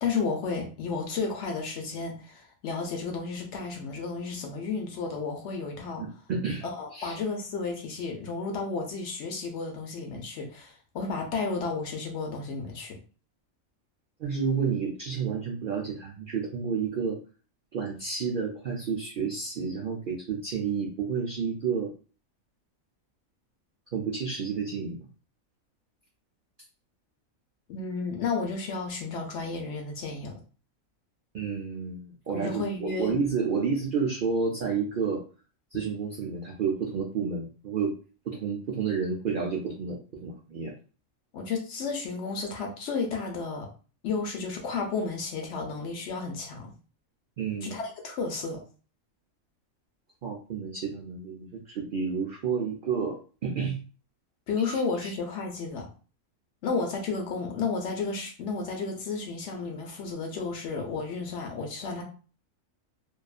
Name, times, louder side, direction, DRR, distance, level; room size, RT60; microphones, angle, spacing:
voice 1, 0.0-6.0 6.6-13.0 27.7-30.4 32.3-33.2 41.3-43.7 44.0-46.7 47.6-48.6 54.5-55.9 56.6-62.0, left 4 dB, 65° left, 2 dB, 0.8 m, -32 dB
voice 2, 6.0-6.6 6.9-7.2 14.2-17.2 17.7-21.9 23.9-25.1 31.3-35.2 35.7-38.0 38.3-40.7 47.4-47.7 50.2-53.8 54.7-55.1, right 5 dB, 75° right, 0 dB, 0.4 m, -30 dB
2.6 x 2.3 x 2.3 m, 0.37 s
omnidirectional pair, 1.4 m